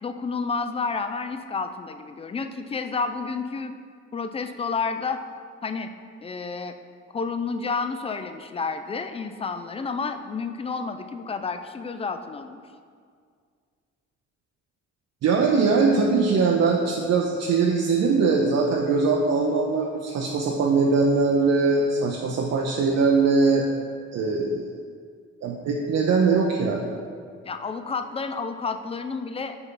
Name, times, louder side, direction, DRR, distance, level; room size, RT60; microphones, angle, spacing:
voice 1, 0.0-3.7 4.1-5.2 5.6-5.9 6.2-6.8 7.1-12.6 27.4-29.6, left 4 dB, 20° left, 9 dB, 0.4 m, -30 dB
voice 2, 15.2-23.7 24.1-24.7 25.4-26.9, right 4 dB, 60° right, 0 dB, 0.6 m, -21 dB
5.8 x 5.4 x 3.8 m, 2.1 s
cardioid pair, 90°, 30 cm